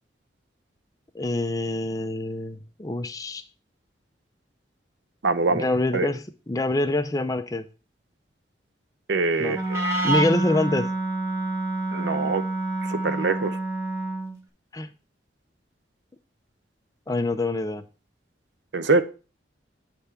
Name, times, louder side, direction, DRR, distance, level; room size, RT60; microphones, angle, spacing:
voice 1, 1.1-3.4 5.5-7.7 9.4-9.6 10.0-10.9 14.7-14.9 17.1-17.8, left 2 dB, 20° left, 0.5 m, -25 dB
voice 2, 5.2-5.7 5.9-6.1 9.1-9.8 11.9-12.4 12.8-13.6 18.7-19.0, right 3 dB, 70° right, 0.6 m, -24 dB
Wind instrument woodwind instrument, 9.5-14.4, right 2 dB, 15° right, 1.0 m, -27 dB
8.1 x 3.5 x 5.6 m
head